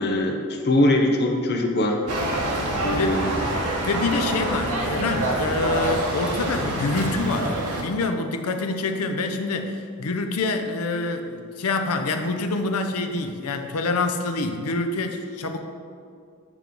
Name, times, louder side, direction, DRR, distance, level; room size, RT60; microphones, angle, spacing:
voice 1, 0.0-2.0 2.8-3.3, left 1 dB, 50° left, 2 dB, 0.7 m, -22 dB
sound 1, 2.1-7.8, right 1 dB, 85° right, 1.1 m, -26 dB
voice 2, 2.9-3.3 3.8-15.6, left 3 dB, 85° left, 6 dB, 0.6 m, -26 dB
8.8 x 3.1 x 5.2 m, 2.3 s
head